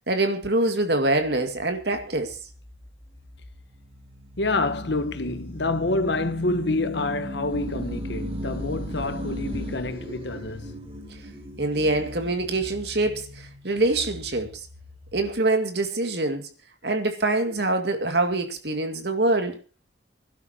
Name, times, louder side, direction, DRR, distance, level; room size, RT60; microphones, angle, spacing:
voice 1, 0.1-2.4 11.6-14.7 15.1-16.5 16.8-19.6, right 2 dB, 60° right, 2.3 m, -25 dB
sound 1, 1.2-15.4, equal, 30° right, 3.8 m, -38 dB
voice 2, 4.4-10.8, left 2 dB, 70° left, 1.2 m, -27 dB
25.0 x 12.0 x 2.9 m
head